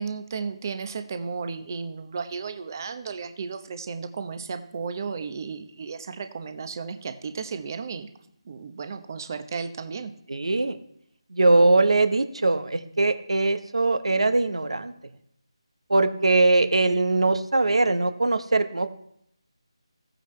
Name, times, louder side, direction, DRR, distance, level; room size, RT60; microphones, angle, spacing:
voice 1, 0.0-8.1 8.4-10.1, right 5 dB, 40° right, 9 dB, 0.9 m, -34 dB
voice 2, 10.3-10.8 11.3-14.9 15.9-18.9, right 2 dB, 75° right, 10 dB, 1.1 m, -21 dB
15.0 x 9.0 x 3.3 m, 0.72 s
figure-of-eight pair, 160°, 3 cm